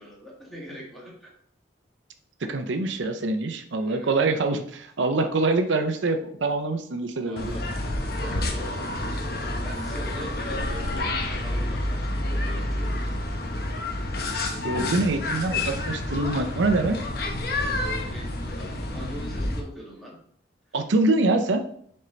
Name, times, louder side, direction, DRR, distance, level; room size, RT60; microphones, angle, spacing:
voice 1, 0.0-1.3 3.8-4.4 7.1-7.7 8.1-13.2 17.4-20.2, equal, ahead, -5 dB, 1.9 m, -42 dB
voice 2, 2.5-7.5 14.6-17.0 20.7-21.6, right 3 dB, 85° right, 7 dB, 0.6 m, -24 dB
sound 1, 7.4-19.6, left 1 dB, 55° left, 1.0 m, -29 dB
6.5 x 4.4 x 3.9 m, 0.63 s
head